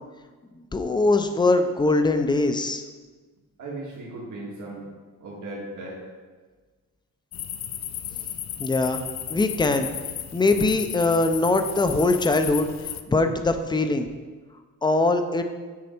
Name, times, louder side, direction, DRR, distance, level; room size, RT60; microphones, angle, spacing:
voice 1, 0.7-2.8 8.6-9.0 9.3-9.9 10.3-12.7 13.1-14.1 14.8-15.4, left 2 dB, 15° left, 7 dB, 0.5 m, -22 dB
voice 2, 3.6-4.9 5.2-6.0 7.9-8.0 8.3-8.7, right 2 dB, 75° right, -4 dB, 1.8 m, -37 dB
sound 1, 7.3-13.0, left 10 dB, 60° left, 0.5 m, -34 dB
8.4 x 5.1 x 4.4 m, 1.4 s
wide cardioid pair, 145°, 31 cm